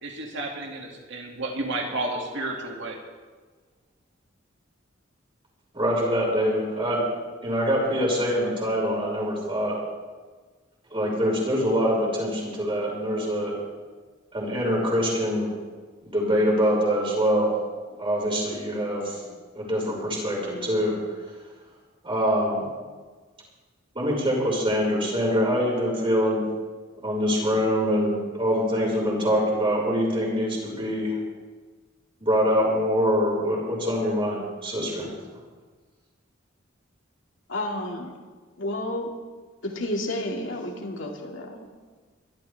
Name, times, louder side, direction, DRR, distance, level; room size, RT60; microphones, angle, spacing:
voice 1, 0.0-3.0, right 2 dB, 65° right, 0 dB, 2.5 m, -31 dB
voice 2, 5.7-7.0 7.4-9.7 10.9-13.6 14.3-15.5 16.1-17.5 18.0-19.2 19.5-21.0 22.0-22.7 23.9-26.4 26.9-31.2 32.2-35.1, equal, 25° right, -4 dB, 5.5 m, -24 dB
voice 3, 37.5-38.1 38.6-39.2 39.6-41.7, left 1 dB, 70° left, 0 dB, 2.5 m, -31 dB
23.0 x 13.0 x 3.6 m, 1.4 s
head